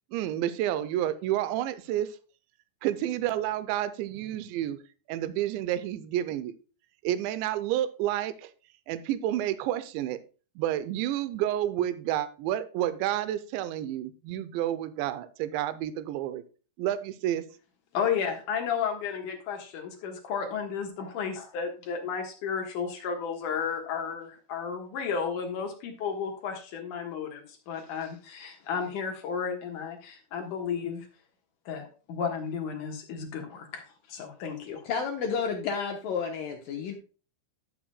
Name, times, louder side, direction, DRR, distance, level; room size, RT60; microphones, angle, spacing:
voice 1, 0.1-2.1 2.8-4.8 5.1-6.6 7.0-8.5 8.9-10.2 10.6-16.4 16.8-17.4, right 12 dB, 85° right, 12 dB, 2.9 m, -30 dB
voice 2, 17.9-31.1 31.7-33.8 34.1-34.8, left 6 dB, 65° left, 3 dB, 2.2 m, -33 dB
voice 3, 34.9-36.9, left 6 dB, 80° left, 3 dB, 2.0 m, -31 dB
16.5 x 6.0 x 2.2 m, 0.36 s
omnidirectional pair, 5.2 m